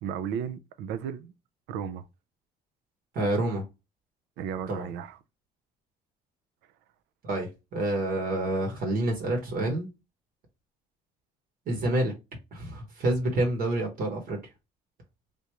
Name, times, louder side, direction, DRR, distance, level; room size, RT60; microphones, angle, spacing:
voice 1, 0.0-1.3 1.7-2.0 4.4-5.2, right 8 dB, 90° right, 0.4 m, -34 dB
voice 2, 3.1-3.6 4.7-4.9 7.2-9.9 11.7-12.1 12.5-14.4, right 1 dB, 60° right, 1.1 m, -28 dB
3.4 x 2.5 x 2.9 m
cardioid pair, 110°, 17 cm